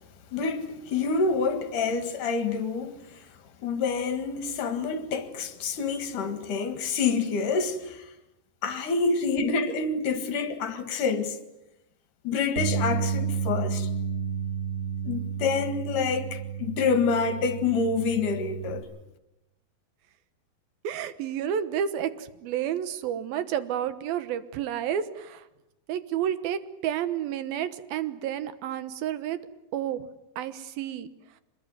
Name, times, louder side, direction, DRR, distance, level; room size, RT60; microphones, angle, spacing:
voice 1, 0.3-3.2 3.6-8.1 8.6-11.4 12.2-13.9 15.0-18.9, left 4 dB, 65° left, 3.2 m, -27 dB
Bass guitar, 12.6-18.8, right 6 dB, 25° right, 6.2 m, -31 dB
voice 2, 20.8-25.4 25.9-29.4 29.7-30.1 30.4-31.1, right 9 dB, 85° right, 3.1 m, -30 dB
25.0 x 21.5 x 9.3 m
omnidirectional pair, 4.2 m